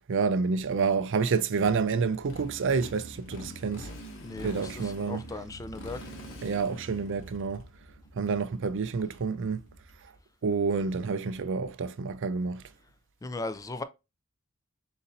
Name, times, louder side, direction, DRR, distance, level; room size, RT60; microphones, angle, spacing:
voice 1, 0.1-3.9 4.4-5.2 6.4-7.6 8.2-9.6 10.4-12.6, right 5 dB, 60° right, 0.4 m, -28 dB
Motorcycle, 1.5-10.2, equal, 60° left, 1.2 m, -45 dB
voice 2, 4.2-6.0 13.2-13.8, left 2 dB, 15° left, 0.3 m, -37 dB
4.1 x 4.1 x 2.6 m
head